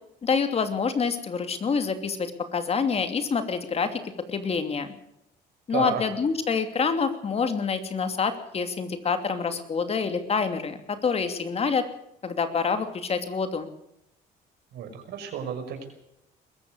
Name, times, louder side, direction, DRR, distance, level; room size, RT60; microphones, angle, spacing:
voice 1, 0.2-4.9 5.7-11.8 12.2-13.7, left 5 dB, 35° left, 8 dB, 2.9 m, -27 dB
voice 2, 5.7-6.0 14.7-15.9, right 8 dB, 75° right, 6 dB, 5.9 m, -32 dB
22.0 x 14.5 x 8.1 m, 0.81 s
cardioid pair, 110°, 17 cm